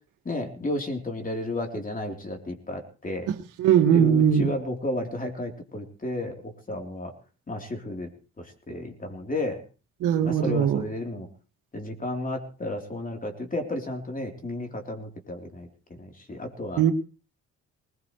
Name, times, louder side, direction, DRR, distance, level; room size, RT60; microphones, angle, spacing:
voice 1, 0.3-3.3 3.9-7.1 7.5-8.1 8.4-9.6 10.2-11.3 11.7-15.7 16.0-16.8, left 1 dB, 25° left, 3 dB, 3.7 m, -33 dB
voice 2, 3.3-4.5 10.0-10.8 16.8-16.9, right 8 dB, 80° right, 6 dB, 2.0 m, -20 dB
21.0 x 20.0 x 3.2 m, 0.36 s
cardioid pair, 90°, 30 cm